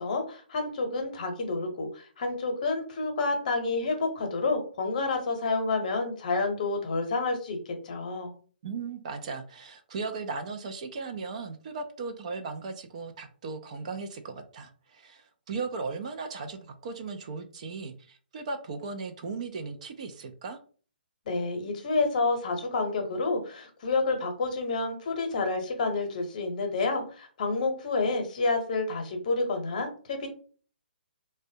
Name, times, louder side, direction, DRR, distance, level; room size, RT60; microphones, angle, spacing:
voice 1, 0.0-8.3 21.3-30.3, left 3 dB, 45° left, 5 dB, 0.8 m, -29 dB
voice 2, 8.6-20.6, right 4 dB, 40° right, 6 dB, 0.4 m, -37 dB
3.3 x 2.2 x 2.7 m, 0.41 s
figure-of-eight pair, 130°, 6 cm